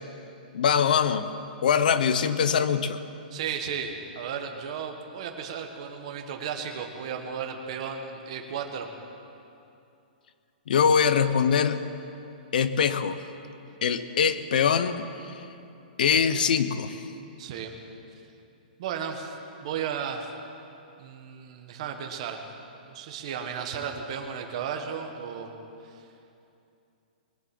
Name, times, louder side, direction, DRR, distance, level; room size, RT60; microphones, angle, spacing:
voice 1, 0.5-1.3 1.6-3.0 10.7-11.8 12.5-13.2 13.8-15.0 15.3-15.4 16.0-17.0, left 7 dB, 60° left, 12 dB, 0.9 m, -23 dB
voice 2, 3.3-8.9 17.4-17.8 18.8-20.3 21.0-22.4 22.8-25.5 25.8-26.1, right 7 dB, 35° right, 3 dB, 1.4 m, -34 dB
21.0 x 7.6 x 7.8 m, 2.7 s
hypercardioid pair, 175°, 5 cm